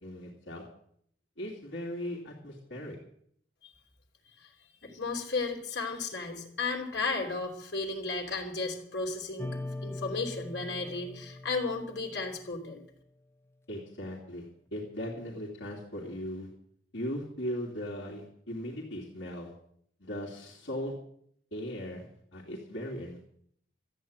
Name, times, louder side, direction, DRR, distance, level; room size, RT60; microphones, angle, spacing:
voice 1, 0.0-0.6 1.4-3.0 13.7-14.4 14.7-16.5 16.9-19.5 20.0-20.9 21.5-23.3, equal, 75° left, -3 dB, 2.8 m, -38 dB
voice 2, 4.8-12.8, left 3 dB, 60° left, 1 dB, 3.3 m, -34 dB
sound 1, 9.4-12.9, left 2 dB, 15° left, 0.8 m, -41 dB
13.5 x 8.8 x 8.9 m, 0.68 s
head